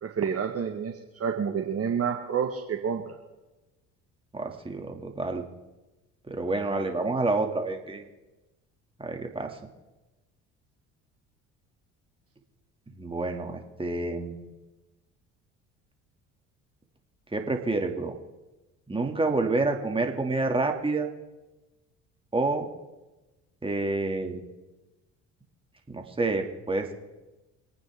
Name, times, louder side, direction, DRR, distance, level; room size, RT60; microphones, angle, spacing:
voice 1, 0.0-3.2, right 7 dB, 40° right, 4 dB, 1.6 m, -29 dB
voice 2, 4.3-5.4 6.3-8.0 9.0-9.6 13.0-14.5 17.3-18.1 18.9-21.1 22.3-22.6 23.6-24.4 25.9-26.9, right 3 dB, 15° right, 3 dB, 2.5 m, -28 dB
25.5 x 9.2 x 3.7 m, 1.1 s
hypercardioid pair, 60°, 35 cm